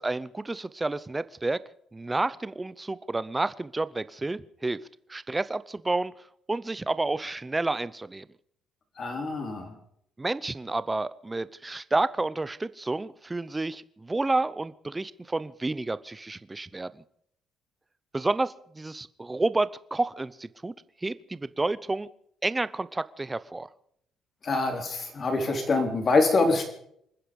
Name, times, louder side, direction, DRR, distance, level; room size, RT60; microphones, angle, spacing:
voice 1, 0.0-1.6 1.9-4.8 5.1-6.1 6.5-8.2 10.2-17.0 18.1-20.7 21.0-22.1 22.4-23.7, right 2 dB, 10° right, 17 dB, 0.6 m, -30 dB
voice 2, 9.0-9.7 24.4-26.6, left 3 dB, 30° left, 4 dB, 3.6 m, -25 dB
27.5 x 10.0 x 5.2 m, 0.68 s
cardioid pair, 155°, 0 cm